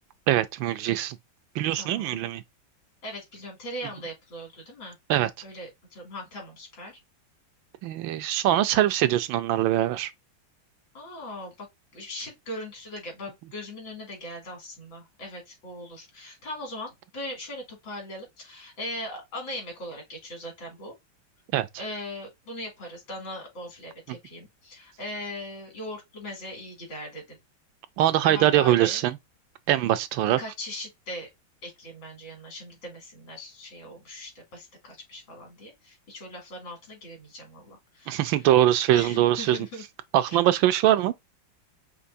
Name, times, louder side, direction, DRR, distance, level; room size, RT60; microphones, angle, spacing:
voice 1, 0.3-1.2 1.5-2.4 5.1-5.3 7.8-10.1 21.5-21.7 28.0-29.2 29.7-30.4 38.1-39.6 40.1-41.1, right 13 dB, 80° right, 1.3 m, -22 dB
voice 2, 1.7-2.2 3.0-5.0 5.4-7.0 10.9-11.7 11.9-20.9 21.8-27.4 28.2-29.0 30.4-31.3 31.6-38.4 38.9-39.8 40.3-40.4, left 1 dB, 75° left, 3.2 m, -39 dB
5.6 x 2.9 x 2.6 m
omnidirectional pair, 2.1 m